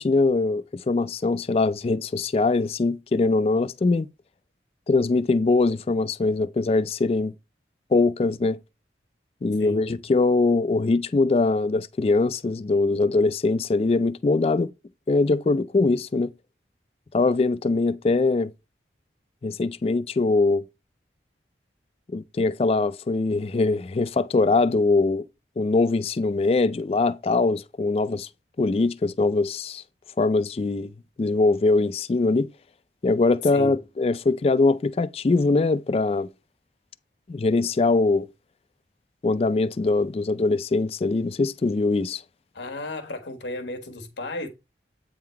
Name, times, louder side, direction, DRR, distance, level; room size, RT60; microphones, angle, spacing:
voice 1, 0.0-4.1 4.9-7.3 7.9-8.6 9.4-14.7 15.1-16.3 17.1-18.5 19.4-20.6 22.1-25.2 25.6-28.3 28.6-29.8 30.2-30.9 31.2-32.5 33.0-36.3 37.3-38.3 39.2-42.2, left 3 dB, 35° left, 0.3 m, -22 dB
voice 2, 42.5-44.5, left 1 dB, 90° left, 1.4 m, -34 dB
8.5 x 3.8 x 4.5 m
head